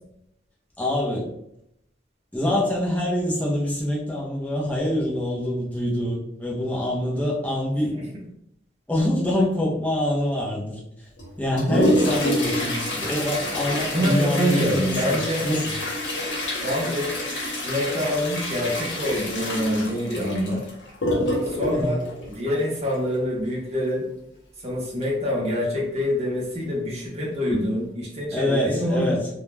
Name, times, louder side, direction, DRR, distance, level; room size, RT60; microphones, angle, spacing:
voice 1, 0.8-1.3 2.3-7.9 8.9-11.1 11.4-15.8 21.7-22.0 28.3-29.3, left 1 dB, 10° left, -5 dB, 0.5 m, -25 dB
Toilet flush, 11.2-23.1 25.0-25.1 25.5-25.6 26.3-26.4 27.1-27.3 27.8-27.9, left 1 dB, 70° left, 0.8 m, -27 dB
voice 2, 13.7-15.5 16.6-17.1 17.6-20.6 21.5-22.0 22.3-24.0 24.6-29.1, equal, 35° right, -3 dB, 0.7 m, -25 dB
2.2 x 2.1 x 3.1 m, 0.77 s
head